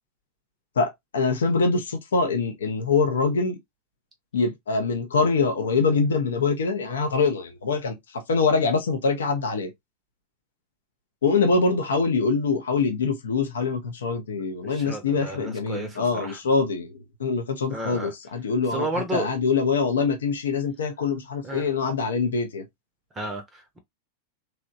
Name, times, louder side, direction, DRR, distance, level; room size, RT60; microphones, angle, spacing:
voice 1, 0.8-3.6 4.3-8.0 8.3-9.7 11.2-16.9 17.2-22.6, left 4 dB, 65° left, 0.5 m, -24 dB
voice 2, 14.6-16.4 17.7-18.1 18.7-19.3 21.4-21.7 23.1-23.8, right 2 dB, 20° right, 0.6 m, -33 dB
2.9 x 2.1 x 2.5 m
figure-of-eight pair, 90°, 0 cm